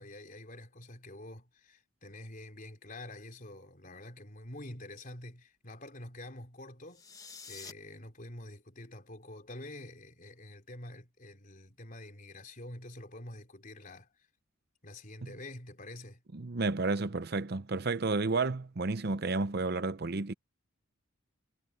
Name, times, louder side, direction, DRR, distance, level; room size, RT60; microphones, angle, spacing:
voice 1, 0.0-14.1 14.8-16.2, left 1 dB, 40° left, 4.0 m, -47 dB
sound 1, 6.9-7.7, left 5 dB, 15° left, 1.3 m, -47 dB
voice 2, 16.3-20.3, right 3 dB, 50° right, 0.7 m, -31 dB
head